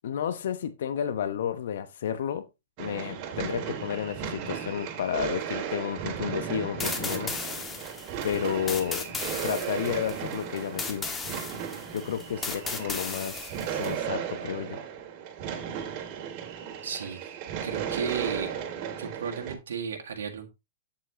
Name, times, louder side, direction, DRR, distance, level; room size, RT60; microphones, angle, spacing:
voice 1, 0.0-2.5 2.8-7.4 8.2-9.1 9.4-11.1 11.9-14.8, left 9 dB, 65° left, 0.9 m, -31 dB
sound 1, 2.8-19.5, right 8 dB, 40° right, 2.3 m, -35 dB
sound 2, 6.8-13.9, left 4 dB, 15° left, 1.7 m, -36 dB
voice 2, 16.8-17.3 17.6-18.5 19.0-20.5, right 6 dB, 75° right, 1.7 m, -34 dB
8.6 x 7.8 x 2.9 m
hypercardioid pair, 110°, 0 cm